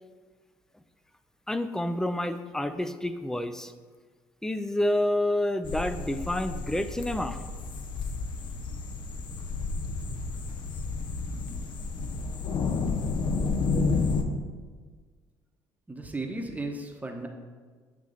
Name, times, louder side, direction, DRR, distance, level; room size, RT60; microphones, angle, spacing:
voice 1, 1.5-3.7 4.4-7.4, left 1 dB, 5° left, 11 dB, 0.4 m, -28 dB
sound 1, 5.6-14.2, left 4 dB, 50° left, 0.7 m, -31 dB
voice 2, 15.9-17.3, right 2 dB, 15° right, 3 dB, 0.9 m, -35 dB
8.3 x 3.0 x 3.9 m, 1.5 s
hypercardioid pair, 60°, 10 cm